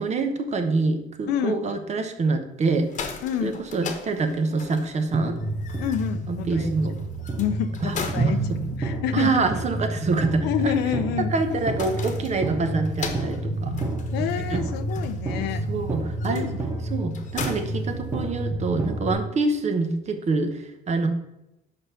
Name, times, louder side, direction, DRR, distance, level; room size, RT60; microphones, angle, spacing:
voice 1, 0.0-2.9 3.4-5.3 6.3-7.0 7.8-8.6 9.1-10.7 11.3-13.7 14.5-14.6 15.7-16.5 16.9-21.1, right 3 dB, 40° right, 7 dB, 1.1 m, -26 dB
voice 2, 1.3-1.6 3.2-3.6 5.8-6.7 7.4-8.4 8.8-9.4 10.4-11.3 14.1-15.6 16.3-16.5, left 10 dB, 90° left, 11 dB, 0.6 m, -28 dB
sound 1, 2.7-18.6, left 5 dB, 45° left, 1.1 m, -40 dB
sound 2, 5.1-19.1, right 2 dB, 15° right, 1.4 m, -29 dB
5.4 x 5.3 x 5.7 m, 0.90 s
cardioid pair, 110°, 17 cm